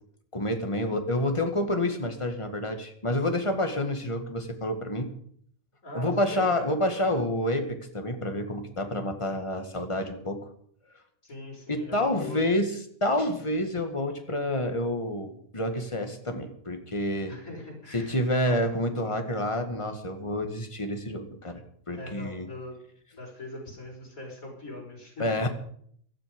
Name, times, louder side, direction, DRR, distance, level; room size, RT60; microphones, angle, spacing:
voice 1, 0.3-5.1 5.9-10.4 11.7-17.4 17.9-21.6 21.9-22.5 25.2-25.5, left 1 dB, 20° left, 6 dB, 1.9 m, -28 dB
voice 2, 5.8-6.7 7.1-7.2 11.2-12.5 17.3-18.2 21.9-22.8 23.2-25.5, left 1 dB, 70° left, -1 dB, 6.0 m, -41 dB
17.0 x 13.0 x 5.2 m, 0.63 s
omnidirectional pair, 1.5 m